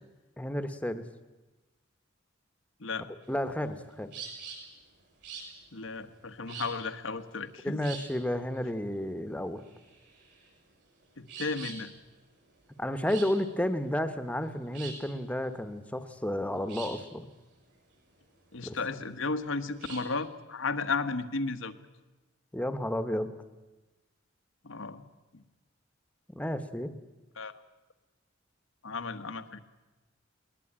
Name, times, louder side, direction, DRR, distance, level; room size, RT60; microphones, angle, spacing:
voice 1, 0.4-1.0 3.3-4.1 7.6-9.6 12.8-17.3 18.6-18.7 22.5-23.3 26.3-27.0, left 1 dB, 5° left, 10 dB, 1.2 m, -32 dB
sound 1, 3.2-20.1, right 5 dB, 60° right, 7.6 m, -46 dB
voice 2, 5.7-7.8 11.2-11.9 18.5-21.8 24.6-25.0 25.3-25.4 27.4-27.5 28.8-29.6, left 4 dB, 85° left, 8 dB, 1.4 m, -34 dB
21.0 x 20.0 x 8.8 m, 1.1 s
head